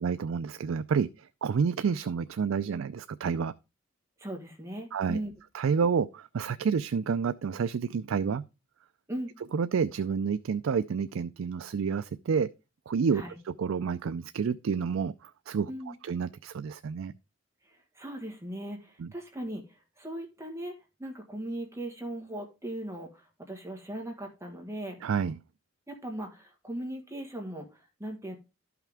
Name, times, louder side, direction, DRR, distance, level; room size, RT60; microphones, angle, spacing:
voice 1, 0.0-3.5 4.9-5.2 5.5-8.4 9.5-12.5 12.9-15.1 15.5-15.7 16.1-17.1 19.0-19.1 25.0-25.4, right 6 dB, 85° right, 0.4 m, -29 dB
voice 2, 4.2-5.3 9.1-9.3 13.1-13.4 15.7-15.9 17.6-25.0 25.9-28.3, right 1 dB, 15° right, 1.5 m, -39 dB
12.5 x 5.8 x 3.5 m
head